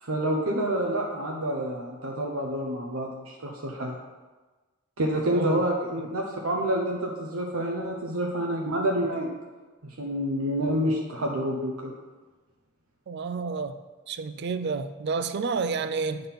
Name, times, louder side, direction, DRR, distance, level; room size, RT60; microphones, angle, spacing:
voice 1, 0.0-4.0 5.0-9.3 9.8-11.9, right 1 dB, 75° right, 0 dB, 0.8 m, -28 dB
voice 2, 5.3-5.6 13.1-13.8 14.1-16.2, right 4 dB, 50° right, 10 dB, 0.4 m, -30 dB
8.6 x 3.8 x 5.6 m, 1.3 s
head